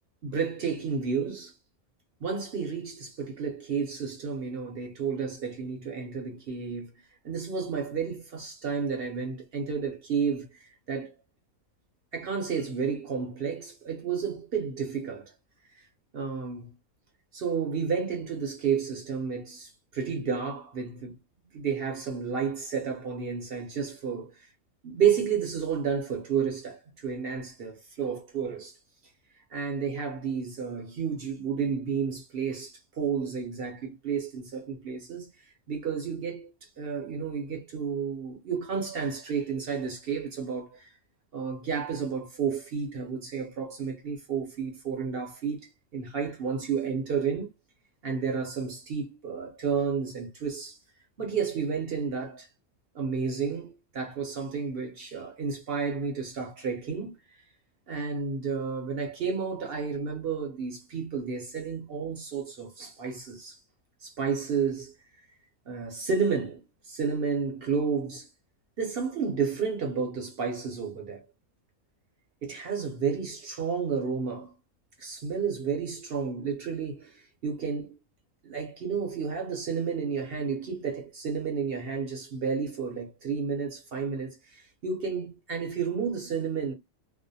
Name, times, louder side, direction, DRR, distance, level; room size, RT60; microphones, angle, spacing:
voice 1, 0.2-1.5 2.2-6.9 7.2-11.1 12.1-15.3 16.1-16.7 17.3-21.2 21.5-24.5 24.8-28.7 29.5-35.3 35.7-36.5 36.8-40.9 41.3-47.5 48.0-50.8 51.2-52.5 52.9-57.1 57.9-63.6 64.0-64.9 65.7-68.3 68.8-71.2 72.4-74.5 75.0-78.0 78.4-86.7, right 6 dB, 55° right, 0.7 m, -31 dB
2.5 x 2.1 x 2.6 m
omnidirectional pair, 1.5 m